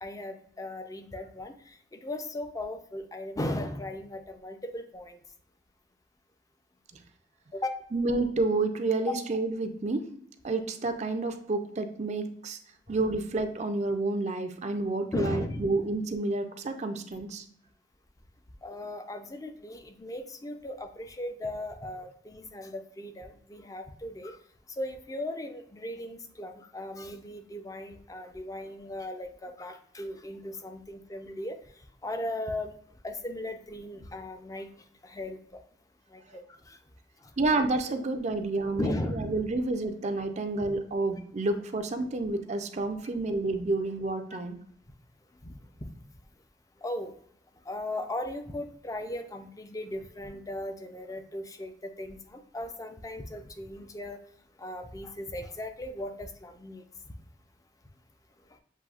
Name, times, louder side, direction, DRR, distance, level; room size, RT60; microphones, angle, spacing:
voice 1, 0.0-5.2 7.5-7.7 9.1-9.2 15.1-15.6 18.6-24.4 24.7-31.6 32.0-32.7 33.0-34.7 35.0-35.6 36.1-36.8 37.2-37.3 38.8-39.3 45.4-45.6 46.8-47.1 47.7-54.2 54.6-56.8, left 1 dB, 20° left, 7 dB, 0.5 m, -37 dB
voice 2, 7.9-10.1 10.4-12.6 12.9-17.4 37.4-44.6, right 2 dB, 40° right, 6 dB, 0.5 m, -29 dB
7.5 x 2.7 x 2.4 m, 0.66 s
head